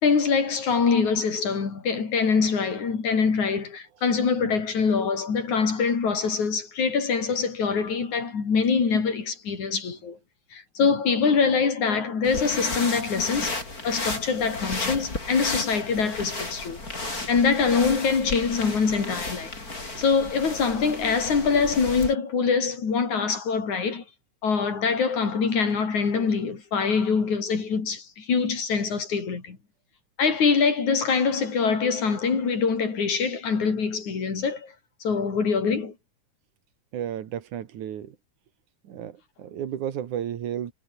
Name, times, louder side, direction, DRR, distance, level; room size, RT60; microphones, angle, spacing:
voice 1, 0.0-10.2 10.5-13.5 13.8-16.8 17.3-19.5 20.0-24.0 24.4-29.6 30.2-34.7 35.0-35.9, left 5 dB, 75° left, 5.6 m, -24 dB
sound 1, 12.2-22.1, left 2 dB, 30° left, 5.7 m, -34 dB
voice 2, 36.9-38.2 38.8-40.7, right 10 dB, 80° right, 3.2 m, -33 dB
omnidirectional pair, 3.4 m